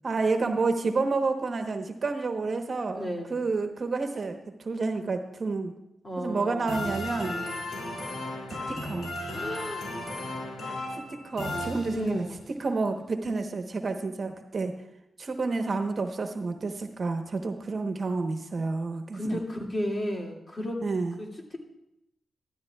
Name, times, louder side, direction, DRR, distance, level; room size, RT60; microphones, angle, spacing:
voice 1, 0.0-5.7 6.2-7.4 8.5-9.1 10.9-12.2 12.6-14.7 15.2-19.4 20.8-21.2, right 3 dB, 55° right, 5 dB, 1.0 m, -30 dB
voice 2, 2.9-3.5 6.0-6.9 9.3-9.9 11.9-12.5 19.1-20.8 21.2-21.3, equal, 35° left, 0 dB, 2.3 m, -33 dB
sound 1, 6.7-12.4, left 1 dB, 70° left, 2.7 m, -35 dB
12.5 x 12.5 x 2.4 m, 0.84 s
cardioid pair, 55°, 0 cm